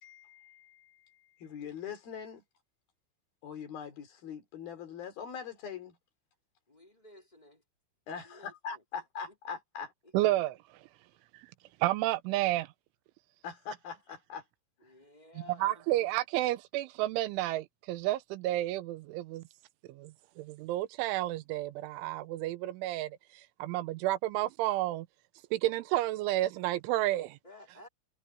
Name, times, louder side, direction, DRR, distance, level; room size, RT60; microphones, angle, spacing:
voice 1, 0.0-2.4 3.4-6.0 8.1-9.9 13.4-14.4, left 7 dB, 55° left, 4.4 m, -42 dB
voice 2, 6.7-7.6 8.1-8.8 9.3-9.6 10.0-10.1 14.8-16.0 27.4-27.9, left 2 dB, 15° left, 1.9 m, -55 dB
voice 3, 10.1-10.6 11.8-12.7 15.6-19.4 19.9-25.1 25.5-27.4, right 16 dB, 85° right, 3.1 m, -31 dB
omnidirectional pair, 5.6 m